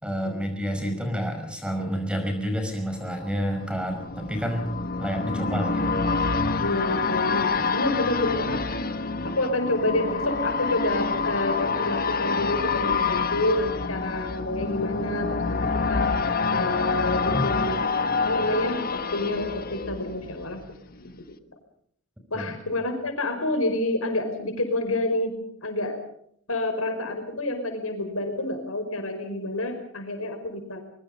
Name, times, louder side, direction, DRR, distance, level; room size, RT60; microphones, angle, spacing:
voice 1, 0.0-4.7 5.0-6.0 17.3-17.5 22.3-22.5, equal, 5° right, 5 dB, 5.3 m, -29 dB
sound 1, 2.9-20.7 21.0-21.1, left 4 dB, 45° left, 1.3 m, -27 dB
voice 2, 6.6-8.9 9.2-16.1 16.5-17.8 18.2-20.6 21.0-21.3 22.3-25.3 25.6-26.0 26.5-30.8, left 1 dB, 85° left, 6 dB, 5.2 m, -28 dB
23.5 x 22.5 x 5.4 m, 0.66 s
head